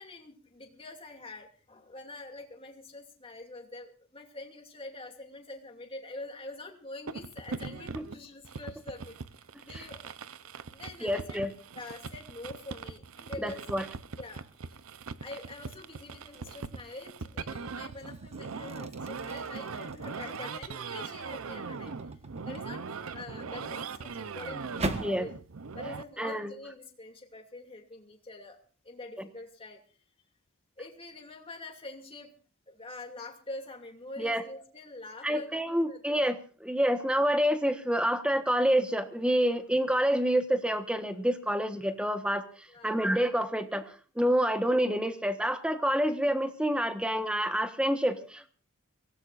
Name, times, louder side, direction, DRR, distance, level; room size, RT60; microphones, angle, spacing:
voice 1, 0.0-9.1 9.7-10.1 10.4-11.4 11.7-13.6 14.2-14.5 15.2-22.2 22.5-25.3 25.7-28.6 28.8-29.8 30.8-32.3 32.7-36.2 42.7-42.9, left 2 dB, 25° left, 2 dB, 2.6 m, -45 dB
sound 1, 7.1-26.0, right 5 dB, 75° right, 0.7 m, -40 dB
voice 2, 11.0-11.5 13.4-13.8 25.0-25.3 26.2-26.5 34.2-34.4 35.2-48.5, equal, 5° right, 8 dB, 1.3 m, -28 dB
sound 2, 16.3-16.7 17.2-25.2, right 2 dB, 30° right, 1.4 m, -42 dB
24.0 x 17.5 x 2.6 m, 0.39 s
head